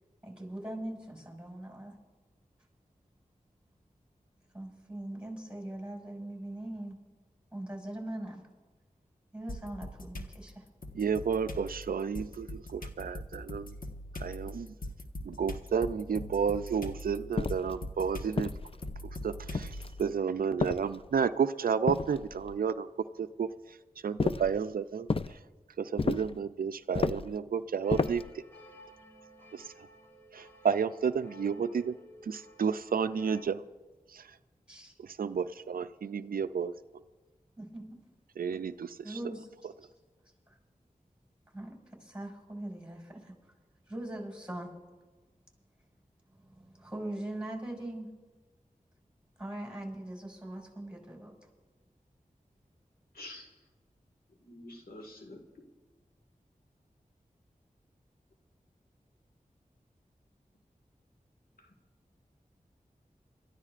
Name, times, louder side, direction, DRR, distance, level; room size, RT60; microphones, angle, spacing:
voice 1, 0.2-2.0 4.5-7.0 7.5-8.4 9.3-10.6 34.7-34.9 37.6-37.8 39.0-39.5 40.5-40.6 41.5-43.3 43.9-44.7 46.4-48.1 49.4-51.5, right 1 dB, 5° right, 2 dB, 5.4 m, -41 dB
sound 1, 9.5-10.3 10.8-20.0, left 1 dB, 75° left, 1.3 m, -41 dB
voice 2, 10.9-13.8 14.1-14.7 15.2-18.5 19.2-22.9 23.2-23.8 24.0-25.4 25.8-28.2 29.5-29.7 30.3-32.0 32.2-33.6 34.1-34.4 35.0-37.0 38.4-39.2, right 6 dB, 85° right, 12 dB, 0.4 m, -32 dB
sound 2, 17.4-17.8 18.4-19.0 19.5-20.1 20.6-21.3 21.9-22.6 24.2-24.6 25.1-25.4 26.0-26.4 26.9-27.4 27.9-28.3, left 4 dB, 40° left, 0.4 m, -32 dB
sound 3, 27.8-33.4, left 1 dB, 15° left, 2.8 m, -54 dB
voice 3, 53.1-53.6 54.4-55.7 61.6-61.7, left 1 dB, 90° left, 2 dB, 1.8 m, -48 dB
28.5 x 13.5 x 2.5 m, 1.3 s
cardioid pair, 40°, 15 cm